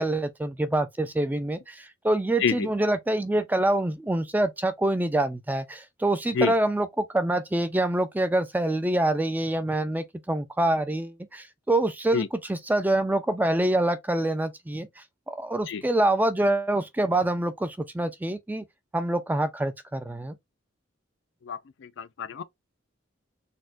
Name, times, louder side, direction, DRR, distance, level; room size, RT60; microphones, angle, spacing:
voice 1, 0.0-14.9 15.3-18.6 18.9-20.4, right 1 dB, 10° right, 0.4 m, -26 dB
voice 2, 21.4-22.4, left 5 dB, 65° left, 0.4 m, -28 dB
4.2 x 2.2 x 2.5 m
head